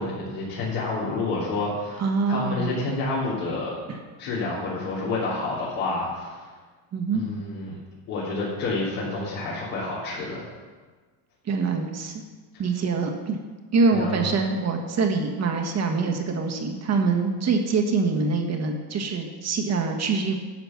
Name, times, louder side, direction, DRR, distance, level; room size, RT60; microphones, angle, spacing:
voice 1, 0.0-3.8 4.2-6.5 7.1-7.7 8.1-10.5 13.9-14.2, left 3 dB, 75° left, -7 dB, 3.3 m, -29 dB
voice 2, 2.0-2.7 6.9-7.2 11.5-12.1 12.6-13.4 13.7-20.4, right 4 dB, 35° right, 3 dB, 1.5 m, -24 dB
10.5 x 6.8 x 5.8 m, 1.4 s
supercardioid pair, 130°, 48 cm